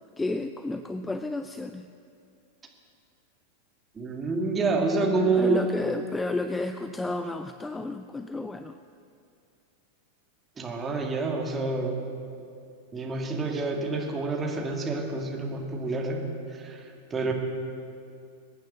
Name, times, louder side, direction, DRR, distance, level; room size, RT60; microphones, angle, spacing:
voice 1, 0.2-1.9 5.4-8.7, left 2 dB, 10° left, 9 dB, 0.4 m, -31 dB
voice 2, 3.9-5.9 10.6-12.1 12.9-17.3, right 3 dB, 20° right, 1 dB, 2.2 m, -28 dB
22.5 x 9.3 x 6.4 m, 2.5 s
figure-of-eight pair, 90°, 0 cm